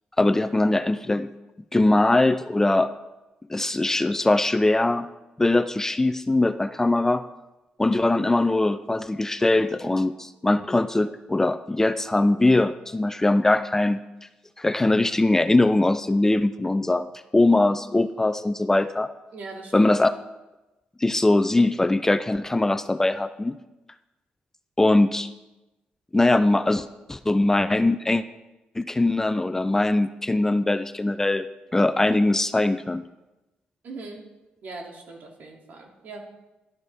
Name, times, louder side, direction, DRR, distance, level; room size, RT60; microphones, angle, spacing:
voice 1, 0.2-1.3 1.7-2.9 3.5-5.1 5.4-7.3 7.8-14.0 14.6-17.1 17.3-19.1 19.7-20.1 21.0-23.6 24.8-25.3 26.1-28.2 28.8-31.5 31.7-33.0, left 2 dB, 15° left, 11 dB, 0.4 m, -21 dB
voice 2, 19.3-20.0 33.8-34.2 34.6-36.2, right 3 dB, 65° right, -1 dB, 2.7 m, -40 dB
13.5 x 12.0 x 3.5 m, 1.0 s
cardioid pair, 115°, 3 cm